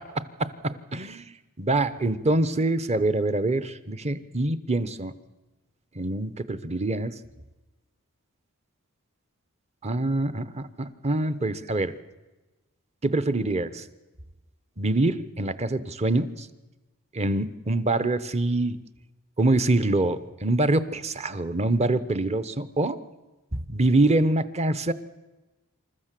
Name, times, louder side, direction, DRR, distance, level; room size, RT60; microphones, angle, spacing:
voice 1, 0.0-5.1 5.9-7.1 9.8-11.9 13.0-13.8 14.8-16.5 17.1-18.8 19.4-23.0 23.5-24.9, right 2 dB, 30° right, 14 dB, 0.9 m, -25 dB
27.5 x 14.0 x 7.6 m, 1.1 s
head